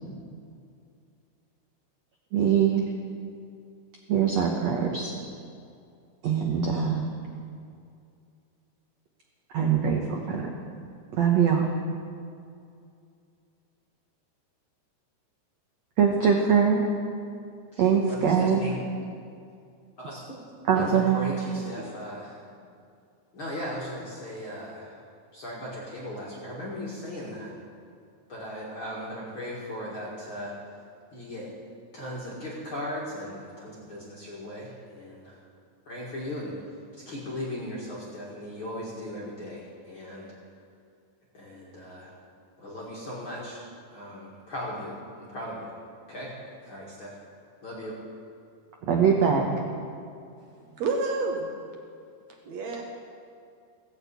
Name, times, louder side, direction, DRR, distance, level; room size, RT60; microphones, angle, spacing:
voice 1, 2.3-2.8 4.1-5.1 6.2-7.1 9.5-10.4 11.1-11.7 16.0-16.8 17.8-18.6 20.7-21.2 48.9-49.5, right 7 dB, 90° right, 1 dB, 1.4 m, -22 dB
voice 2, 17.7-18.8 20.0-20.2 20.7-22.4 23.3-24.9 25.3-27.5 28.3-30.6 31.1-31.5 31.9-35.4 35.9-36.5 36.9-40.3 41.3-42.1 42.6-43.6 43.9-45.8 46.1-46.3 46.6-47.1 47.6-48.0, equal, 40° left, -5 dB, 2.1 m, -37 dB
voice 3, 50.4-51.5 52.5-52.8, right 3 dB, 70° right, 1 dB, 1.7 m, -30 dB
17.5 x 6.6 x 8.3 m, 2.4 s
omnidirectional pair, 4.6 m